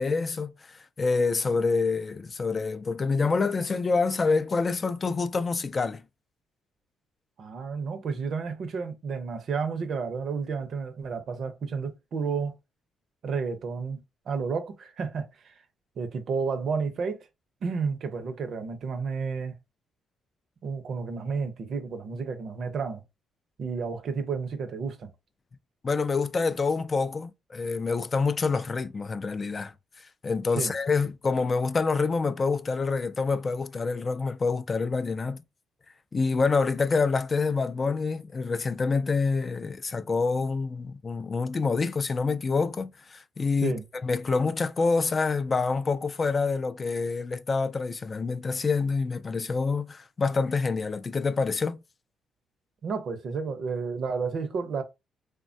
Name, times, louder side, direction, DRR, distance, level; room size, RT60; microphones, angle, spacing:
voice 1, 0.0-6.0 25.8-35.4 36.1-43.8 44.0-51.8, left 4 dB, 35° left, 0.3 m, -27 dB
voice 2, 7.4-12.6 13.2-15.5 16.0-17.2 17.6-19.5 20.6-23.0 23.6-25.1 30.5-30.7 43.6-43.8 52.8-54.8, right 5 dB, 60° right, 0.6 m, -31 dB
3.2 x 2.2 x 2.6 m
cardioid pair, 90°, 0 cm